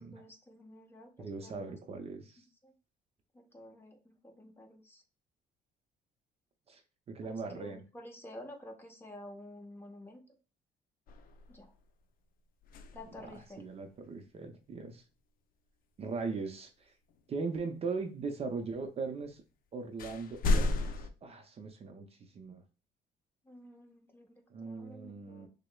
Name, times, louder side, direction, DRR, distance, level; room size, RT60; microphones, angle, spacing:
voice 1, 0.0-2.2 2.6-2.7 3.3-5.0 7.2-10.2 11.5-11.7 12.9-13.6 23.4-25.5, left 1 dB, 15° left, 3 dB, 0.8 m, -51 dB
voice 2, 1.2-2.4 6.7-6.8 7.1-7.8 13.2-15.0 16.0-16.9 17.3-19.4 19.7-22.1 22.3-22.6 24.5-25.5, right 4 dB, 35° right, 6 dB, 0.5 m, -39 dB
sound 1, 11.1-11.8 12.6-13.6 17.1-17.2 19.2-19.3 20.0-21.1, left 2 dB, 55° left, 0.5 m, -33 dB
6.0 x 2.0 x 2.2 m, 0.35 s
cardioid pair, 110°, 17 cm